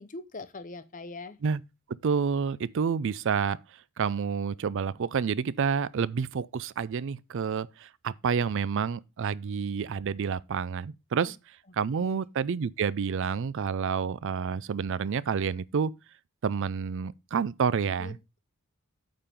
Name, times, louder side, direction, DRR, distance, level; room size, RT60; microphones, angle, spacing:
voice 1, 0.0-1.4 11.2-11.3 12.0-12.2 18.0-18.1, left 3 dB, 35° left, 0.8 m, -42 dB
voice 2, 2.0-3.6 4.0-11.4 11.7-15.9 16.4-18.2, right 6 dB, 60° right, 0.4 m, -29 dB
8.8 x 3.8 x 6.7 m
head